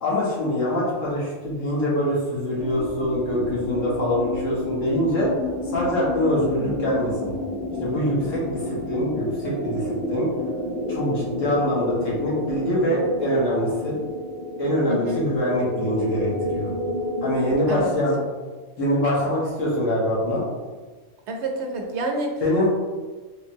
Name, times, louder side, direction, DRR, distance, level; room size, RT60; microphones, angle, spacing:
voice 1, 0.0-5.3 5.7-7.3 7.8-10.3 10.9-14.0 14.6-16.7 17.2-18.2 18.8-20.4 22.4-22.7, equal, 80° left, -6 dB, 1.5 m, -24 dB
sound 1, 2.6-17.9, left 1 dB, 35° right, 0.6 m, -30 dB
voice 2, 14.9-15.2 17.7-18.0 21.3-22.4, right 2 dB, 65° right, 2 dB, 0.9 m, -28 dB
3.9 x 3.0 x 2.7 m, 1.4 s
omnidirectional pair, 1.3 m